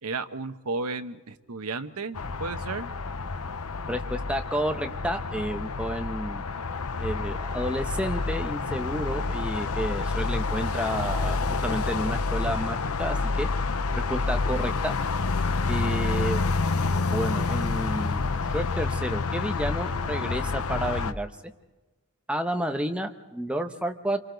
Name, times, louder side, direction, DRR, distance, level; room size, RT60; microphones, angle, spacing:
voice 1, 0.0-2.9, right 3 dB, 85° right, 9 dB, 1.0 m, -33 dB
sound 1, 2.1-21.1, left 4 dB, 80° left, 0.8 m, -28 dB
voice 2, 3.9-6.5 7.0-13.5 14.1-14.9 15.7-16.5 17.0-18.2 18.5-21.3 22.3-24.2, right 1 dB, 5° right, 5 dB, 1.0 m, -31 dB
28.0 x 24.0 x 3.9 m, 1.2 s
head